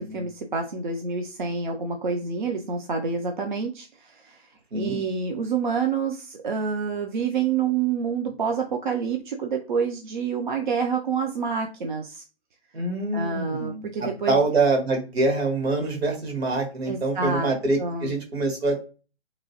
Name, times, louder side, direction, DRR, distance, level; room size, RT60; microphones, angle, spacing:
voice 1, 0.0-4.5 4.7-12.2 13.1-14.4 16.9-17.5 17.8-18.1, right 5 dB, 45° right, 3 dB, 0.5 m, -28 dB
voice 2, 12.7-18.8, right 2 dB, 60° right, 2 dB, 1.4 m, -25 dB
2.9 x 2.5 x 2.7 m, 0.34 s
figure-of-eight pair, 135°, 34 cm